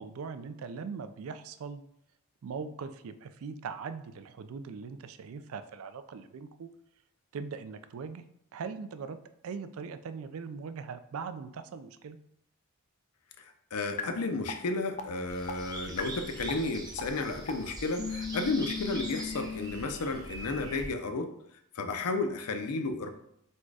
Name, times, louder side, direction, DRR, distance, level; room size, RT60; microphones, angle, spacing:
voice 1, 0.0-1.8 2.4-6.7 7.3-8.2 8.5-9.2 9.4-12.2, right 5 dB, 70° right, 11 dB, 0.3 m, -40 dB
voice 2, 13.7-21.3 21.8-23.1, left 3 dB, 85° left, 7 dB, 0.5 m, -32 dB
sound 1, 14.0-14.1 14.5-14.6 15.0-15.1 15.5-15.6 16.0-16.1 16.5-16.6 17.0-17.1 17.5-17.6 18.0-19.7, left 6 dB, 30° left, 0.3 m, -36 dB
sound 2, 15.3-20.9, right 1 dB, 20° right, 0.6 m, -43 dB
4.2 x 2.3 x 4.6 m, 0.73 s
head